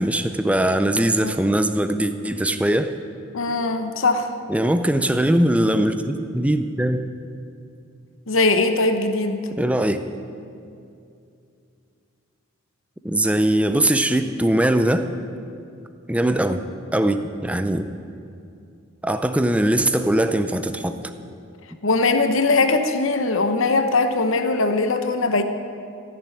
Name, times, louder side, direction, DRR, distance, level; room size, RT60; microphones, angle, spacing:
voice 1, 0.0-3.0 4.5-7.1 9.6-10.0 13.0-15.1 16.1-16.6 16.9-17.9 19.0-21.0, right 1 dB, 5° right, 8 dB, 0.5 m, -21 dB
voice 2, 3.3-4.3 8.3-9.5 21.8-25.4, left 3 dB, 65° left, 7 dB, 1.0 m, -20 dB
15.0 x 7.0 x 9.9 m, 2.5 s
head